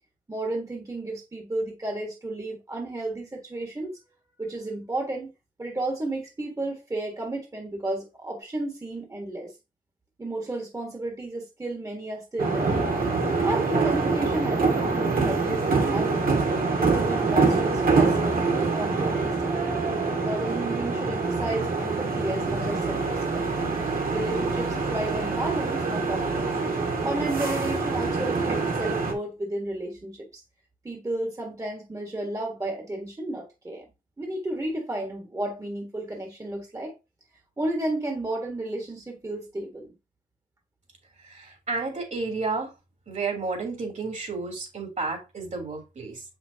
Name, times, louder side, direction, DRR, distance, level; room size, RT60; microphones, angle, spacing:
voice 1, 0.3-3.9 4.4-5.3 5.6-9.5 10.2-13.0 13.4-16.3 16.8-19.6 20.2-23.5 24.1-26.6 27.0-30.4 30.8-33.8 34.2-36.9 37.6-39.9, right 1 dB, 20° right, 1.4 m, -32 dB
sound 1, 12.4-29.1, right 4 dB, 80° right, 1.9 m, -25 dB
voice 2, 41.2-42.7 43.1-46.2, right 3 dB, 55° right, 3.0 m, -31 dB
7.3 x 5.9 x 2.8 m
wide cardioid pair, 110°, 15 cm